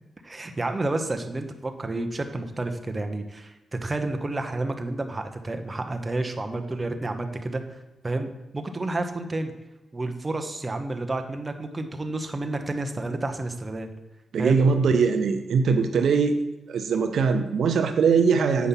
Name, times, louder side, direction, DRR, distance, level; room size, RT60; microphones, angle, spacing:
voice 1, 0.2-3.5 3.8-7.6 8.0-9.5 9.9-13.9 14.4-14.6, right 2 dB, 25° right, 6 dB, 1.2 m, -30 dB
voice 2, 14.3-16.4 16.7-18.7, right 5 dB, 75° right, 7 dB, 0.6 m, -21 dB
8.4 x 5.4 x 5.8 m, 1.0 s
cardioid pair, 75°, 0 cm